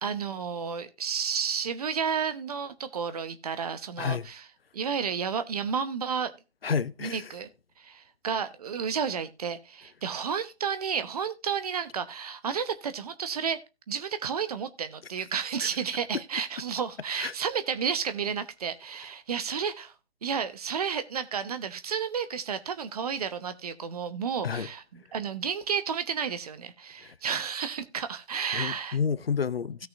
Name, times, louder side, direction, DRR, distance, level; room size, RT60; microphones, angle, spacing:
voice 1, 0.0-4.5 4.7-6.3 7.0-7.5 7.8-13.6 13.9-19.9 20.2-29.0, right 7 dB, 35° right, 1.0 m, -31 dB
voice 2, 6.6-7.3 15.6-15.7 17.2-17.3 24.4-24.7 27.0-27.1 28.5-29.9, left 6 dB, 65° left, 0.8 m, -30 dB
17.0 x 6.0 x 2.6 m
figure-of-eight pair, 140°, 32 cm